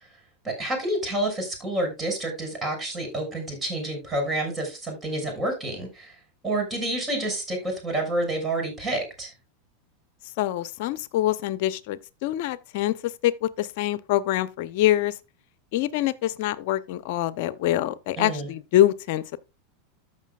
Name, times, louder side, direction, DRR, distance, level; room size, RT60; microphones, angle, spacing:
voice 1, 0.4-6.1 6.4-9.3 18.2-18.5, right 1 dB, 20° right, 6.1 m, -29 dB
voice 2, 10.4-15.2 15.7-19.4, left 13 dB, 60° left, 0.6 m, -25 dB
14.0 x 5.9 x 2.4 m
hypercardioid pair, 100°, 0 cm